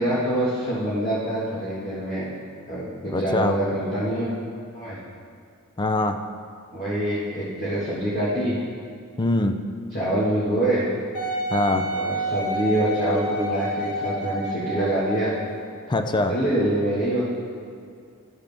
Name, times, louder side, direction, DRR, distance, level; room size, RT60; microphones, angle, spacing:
voice 1, 0.0-2.3 2.7-4.3 4.7-5.0 6.7-8.6 9.9-10.9 11.9-15.3 16.3-17.3, right 1 dB, 35° left, -10 dB, 1.7 m, -25 dB
voice 2, 3.1-3.6 5.8-6.2 9.2-9.6 11.5-11.9 15.9-16.4, left 2 dB, 20° left, 7 dB, 0.4 m, -23 dB
Wind instrument woodwind instrument, 11.1-15.5 16.1-16.2, equal, 85° left, 2.1 m, -29 dB
13.0 x 6.0 x 3.5 m, 2.4 s
head